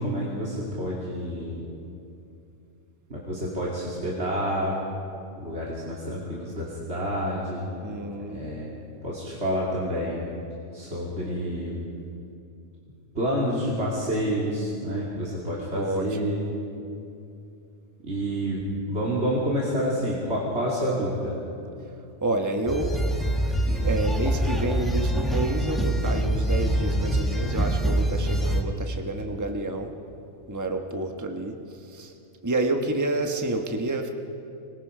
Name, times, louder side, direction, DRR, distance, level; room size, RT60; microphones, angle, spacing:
voice 1, 0.0-1.6 3.1-4.8 5.4-7.7 8.3-10.2 10.7-11.9 13.1-16.4 18.0-21.4, equal, 60° right, -6 dB, 2.9 m, -28 dB
voice 2, 7.8-8.5 15.7-16.3 22.2-23.0 23.7-29.9 30.5-32.1 32.4-34.1, right 2 dB, 15° right, 4 dB, 1.2 m, -29 dB
sound 1, 22.7-28.6, right 1 dB, ahead, 1.7 m, -25 dB
25.0 x 21.0 x 5.0 m, 2.7 s
omnidirectional pair, 1.3 m